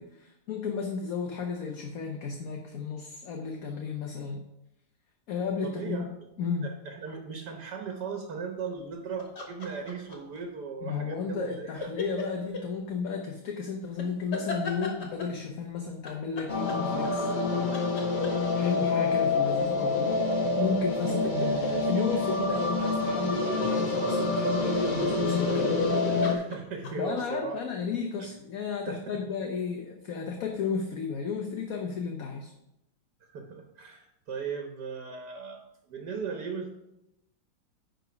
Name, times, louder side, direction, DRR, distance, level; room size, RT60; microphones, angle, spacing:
voice 1, 0.0-4.4 5.3-6.1 6.4-6.7 10.8-17.3 18.5-20.1 20.6-26.0 27.0-32.5, left 5 dB, 60° left, 2 dB, 1.2 m, -33 dB
voice 2, 5.6-6.0 6.6-11.9 18.6-19.1 21.0-21.1 26.2-27.5 28.9-29.2 33.3-35.6 35.9-36.7, right 5 dB, 75° right, 3 dB, 1.6 m, -37 dB
sound 1, 9.2-10.4 11.8-12.7 14.0-15.4 16.0-17.4 17.7-18.7 20.4-23.1 25.5-25.9 26.2-27.3, left 3 dB, 75° left, 2.0 m, -38 dB
sound 2, 16.5-26.3, left 3 dB, 35° left, 1.1 m, -27 dB
10.0 x 3.9 x 5.9 m, 0.85 s
omnidirectional pair, 1.8 m